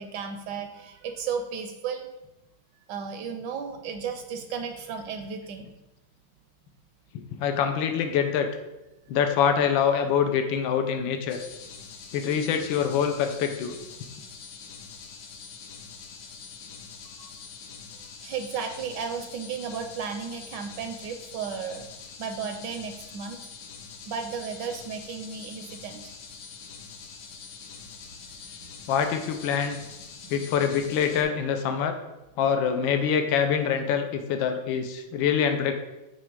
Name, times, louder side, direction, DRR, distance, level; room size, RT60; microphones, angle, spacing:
voice 1, 0.0-2.1 2.9-5.7 17.2-17.3 17.9-21.9 22.2-23.4 24.1-26.0 28.6-28.7 30.2-30.4, right 6 dB, 75° right, 6 dB, 1.2 m, -34 dB
voice 2, 7.1-8.5 9.1-11.4 12.1-13.8 28.9-29.8 30.3-32.0 32.4-35.7, left 7 dB, 80° left, 6 dB, 1.4 m, -25 dB
sound 1, 11.3-31.2, left 5 dB, 65° left, 1.2 m, -44 dB
8.7 x 3.2 x 4.7 m, 0.97 s
omnidirectional pair, 2.1 m